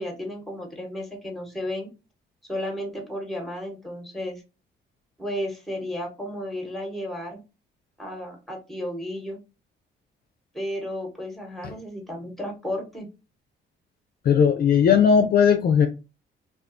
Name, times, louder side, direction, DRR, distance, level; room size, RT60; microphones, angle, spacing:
voice 1, 0.0-1.9 2.5-4.4 5.2-7.4 8.0-9.4 10.5-13.1, left 1 dB, ahead, 1.0 m, -33 dB
voice 2, 14.3-15.9, left 7 dB, 50° left, 0.4 m, -17 dB
2.4 x 2.3 x 2.5 m
cardioid pair, 90°, 20 cm